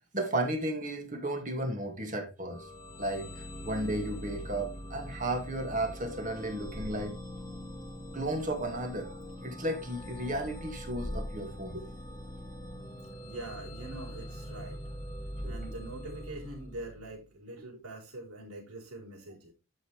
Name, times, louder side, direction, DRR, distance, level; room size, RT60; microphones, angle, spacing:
voice 1, 0.1-2.7 3.0-7.2 8.1-11.9 15.4-15.5 17.6-17.7, right 1 dB, 35° right, 2.2 m, -34 dB
sound 1, 2.5-17.2, equal, 15° left, 1.9 m, -42 dB
voice 2, 13.2-14.8 15.4-19.5, right 2 dB, 90° right, 4.2 m, -44 dB
11.5 x 5.7 x 3.3 m
head